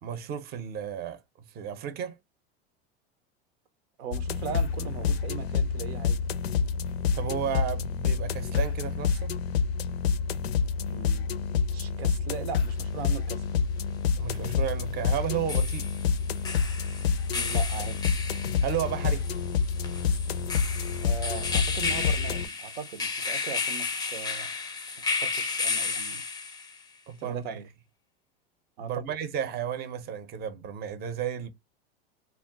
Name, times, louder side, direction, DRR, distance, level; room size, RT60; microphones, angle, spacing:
voice 1, 0.0-1.2 1.5-2.2 7.1-9.3 14.2-15.9 18.6-19.3 27.1-27.6 28.8-31.5, right 9 dB, 30° right, 0.6 m, -33 dB
voice 2, 4.0-6.2 10.9-11.3 11.7-13.5 17.3-18.1 21.0-24.5 25.1-26.2 27.2-27.7 28.8-29.0, right 6 dB, 80° right, 0.6 m, -39 dB
sound 1, 4.1-22.5, left 6 dB, 90° left, 0.5 m, -28 dB
sound 2, 12.6-12.7 15.2-26.8, left 4 dB, 15° left, 0.5 m, -33 dB
2.3 x 2.1 x 3.6 m
hypercardioid pair, 105°, 30 cm